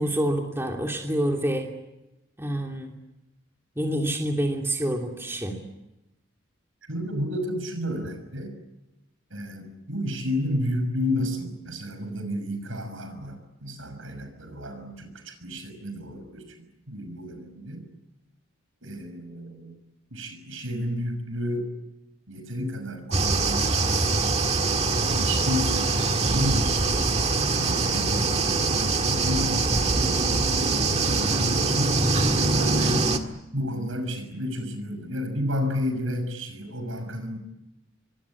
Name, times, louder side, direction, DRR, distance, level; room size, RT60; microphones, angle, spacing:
voice 1, 0.0-1.7 2.4-2.9 3.8-5.6, right 1 dB, 10° right, 1 dB, 2.9 m, -27 dB
voice 2, 6.9-8.5 9.3-17.9 18.8-19.8 20.1-21.7 22.3-24.4 25.0-30.3 30.7-33.1 33.5-37.4, left 1 dB, 75° right, 8 dB, 6.3 m, -32 dB
sound 1, 23.1-33.2, right 3 dB, 30° right, 1.8 m, -23 dB
24.5 x 24.5 x 8.7 m, 0.93 s
head